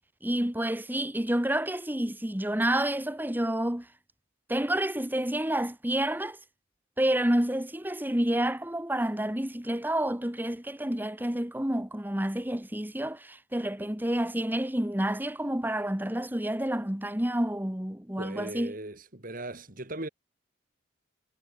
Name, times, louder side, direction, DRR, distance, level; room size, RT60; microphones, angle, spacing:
voice 1, 0.2-3.9 4.5-6.4 7.0-18.7, right 1 dB, 10° right, 1.5 m, -29 dB
voice 2, 18.2-20.1, right 2 dB, 45° right, 3.2 m, -38 dB
head